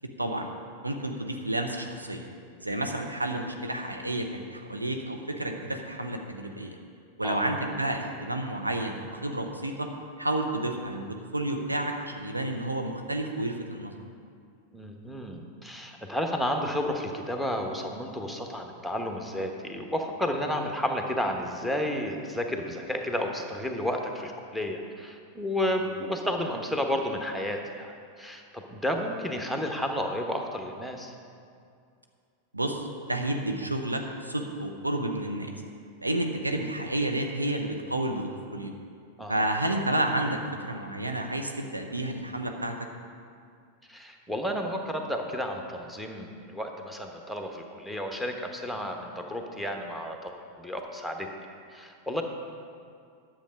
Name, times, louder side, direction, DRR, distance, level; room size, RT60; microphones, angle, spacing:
voice 1, 0.2-0.5 0.8-2.3 2.6-6.7 7.2-9.9 10.2-11.0 11.3-13.9 32.5-35.5 36.0-38.7 39.3-42.7, right 1 dB, 85° right, 3 dB, 0.8 m, -30 dB
voice 2, 14.7-31.1 39.2-39.5 43.9-51.3 51.7-52.2, equal, ahead, 2 dB, 1.1 m, -32 dB
10.5 x 7.3 x 5.2 m, 2.3 s
figure-of-eight pair, 90°, 0 cm